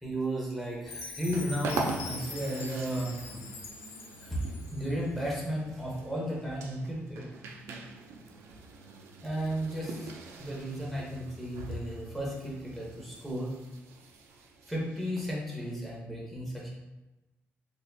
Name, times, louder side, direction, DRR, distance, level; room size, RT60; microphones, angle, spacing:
voice 1, 0.0-3.4 4.2-7.2 9.2-10.1 10.4-13.5 14.7-16.7, equal, 5° left, -4 dB, 0.8 m, -34 dB
sound 1, 0.6-15.7, right 3 dB, 90° right, 0.5 m, -42 dB
Chime, 0.9-5.0, left 4 dB, 80° left, 0.6 m, -43 dB
4.1 x 2.5 x 2.7 m, 1.0 s
cardioid pair, 150°, 4 cm